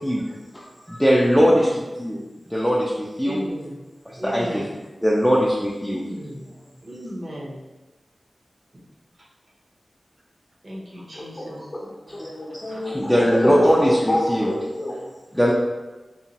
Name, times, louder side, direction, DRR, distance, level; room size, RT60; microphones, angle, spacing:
voice 1, 0.6-1.5 2.0-2.2 2.5-2.9 3.2-3.4 4.2-4.6 5.0-6.0 12.9-14.5 15.3-15.5, equal, 5° left, -5 dB, 0.4 m, -20 dB
voice 2, 1.3-1.8 3.2-3.8 4.1-4.8 5.9-6.5 6.8-7.6 8.7-8.9 9.1-9.3 10.6-12.2 12.7-14.1 15.0-15.1, equal, 45° right, -3 dB, 0.7 m, -36 dB
voice 3, 11.0-11.6 12.1-15.3, left 1 dB, 30° left, -4 dB, 0.7 m, -27 dB
2.8 x 2.2 x 2.8 m, 1.1 s
wide cardioid pair, 65°, 0 cm